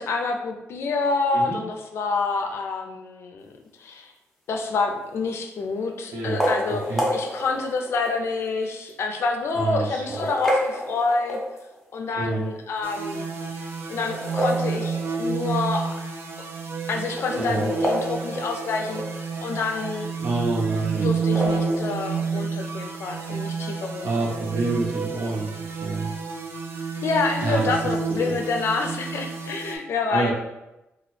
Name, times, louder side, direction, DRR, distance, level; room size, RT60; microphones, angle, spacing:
voice 1, 0.0-3.5 3.8-4.1 4.5-6.8 7.1-11.4 11.9-13.3 13.9-15.9 16.9-20.1 21.0-24.1 27.0-30.3, left 4 dB, 60° left, 4 dB, 0.4 m, -27 dB
sound 1, 4.5-5.0 6.2-8.3 8.9-9.0 9.9-11.9 14.0-15.4 15.7-15.8 16.1-16.2 17.0-19.3 21.1-21.8, equal, 5° left, 0.6 m, -29 dB
voice 2, 6.1-7.1 9.5-10.2 12.2-12.5 17.4-17.7 20.2-21.2 23.8-26.1 27.4-27.7 28.1-28.3 30.1-30.3, right 3 dB, 90° right, -4 dB, 0.9 m, -27 dB
sound 2, 12.8-29.8, right 5 dB, 60° right, 0.4 m, -30 dB
2.9 x 2.4 x 3.1 m, 0.94 s
wide cardioid pair, 140°, 5 cm